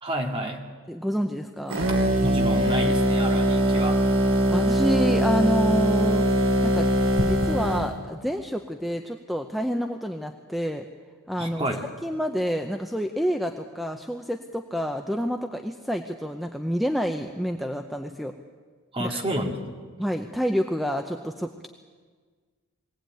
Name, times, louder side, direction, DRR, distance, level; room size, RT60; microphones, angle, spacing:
voice 1, 0.0-0.6 2.2-4.1 11.4-11.8 18.9-19.7, right 1 dB, 25° right, 2 dB, 2.2 m, -30 dB
voice 2, 0.9-2.0 4.5-6.2 6.6-6.9 7.2-10.9 11.3-11.7 12.0-18.3 19.0-19.2 20.0-21.7, equal, ahead, 5 dB, 0.7 m, -28 dB
sound 1, 1.7-7.9, right 1 dB, 65° right, 2.5 m, -22 dB
22.5 x 17.0 x 9.2 m, 1.5 s
head